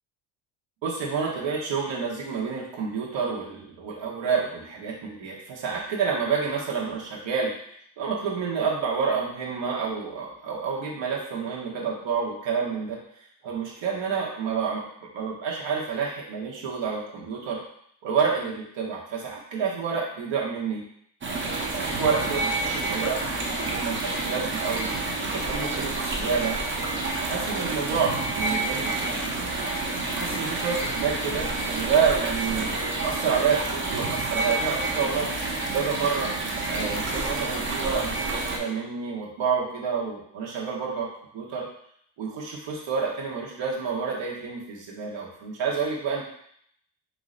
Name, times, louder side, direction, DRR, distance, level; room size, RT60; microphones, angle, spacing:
voice 1, 0.8-7.5 8.0-13.0 13.4-14.9 15.1-17.6 18.0-20.8 21.7-23.4 23.7-24.9 25.3-26.5 27.2-29.2 30.1-35.3 35.7-36.3 36.7-41.1 41.3-41.7 42.2-46.2, right 6 dB, 65° right, -3 dB, 1.3 m, -29 dB
sound 1, 21.2-38.6, right 2 dB, 25° right, 0.7 m, -29 dB
4.2 x 2.9 x 3.8 m, 0.68 s
cardioid pair, 120°, 48 cm